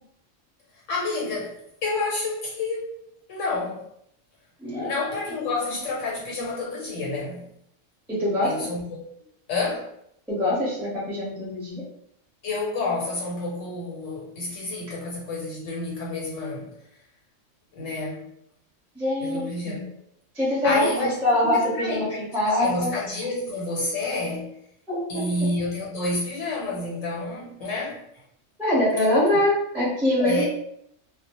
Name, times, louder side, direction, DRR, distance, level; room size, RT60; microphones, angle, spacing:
voice 1, 0.7-2.9 3.3-3.8 4.8-7.5 8.4-9.0 9.5-9.9 12.4-16.8 17.7-18.3 19.2-19.9 20.6-21.1 21.4-22.2 22.4-24.6 25.1-28.0 30.1-30.5, left 3 dB, 85° left, -3 dB, 1.0 m, -29 dB
voice 2, 4.6-4.9 8.1-8.7 10.3-11.8 18.9-19.8 20.3-22.9 24.9-25.2 28.6-30.5, left 1 dB, ahead, -7 dB, 0.6 m, -24 dB
2.1 x 2.0 x 2.8 m, 0.73 s
omnidirectional pair, 1.3 m